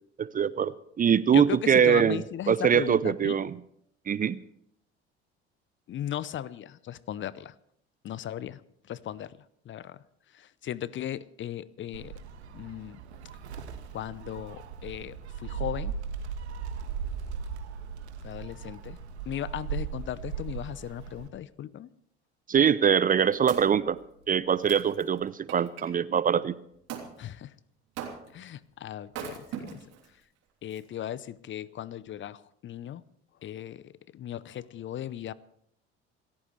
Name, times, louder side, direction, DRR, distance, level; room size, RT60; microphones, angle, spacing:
voice 1, 0.2-3.5 4.1-4.4 22.5-24.0 24.3-26.5, right 8 dB, 25° right, 18 dB, 0.6 m, -23 dB
voice 2, 1.3-3.4 5.9-7.5 8.0-8.6 8.9-9.4 9.7-10.0 10.3-12.1 12.5-13.0 13.9-16.0 18.2-19.0 19.3-21.9 27.2-27.6 28.3-29.8 30.6-33.0 33.4-35.3, left 11 dB, 35° left, 20 dB, 0.7 m, -37 dB
Gull seagull, 11.9-21.3, right 6 dB, 75° right, 1.5 m, -38 dB
Wood, 22.9-25.9 26.9-27.1 28.0-28.5 29.1-30.1 30.7-30.8, right 8 dB, 50° right, 3.4 m, -41 dB
27.5 x 14.5 x 3.2 m, 0.71 s
figure-of-eight pair, 60°, 33 cm